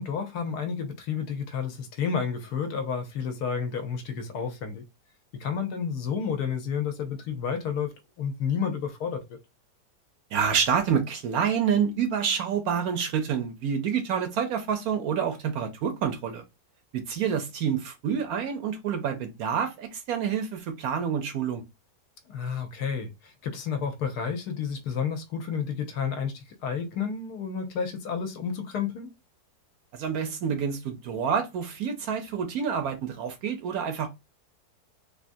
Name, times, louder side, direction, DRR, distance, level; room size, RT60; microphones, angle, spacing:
voice 1, 0.0-4.8 5.4-9.4 22.3-29.1, left 6 dB, 75° left, 1.1 m, -31 dB
voice 2, 10.3-16.4 16.9-21.6 29.9-34.1, right 7 dB, 70° right, 1.0 m, -28 dB
3.5 x 2.4 x 2.6 m
omnidirectional pair, 1.8 m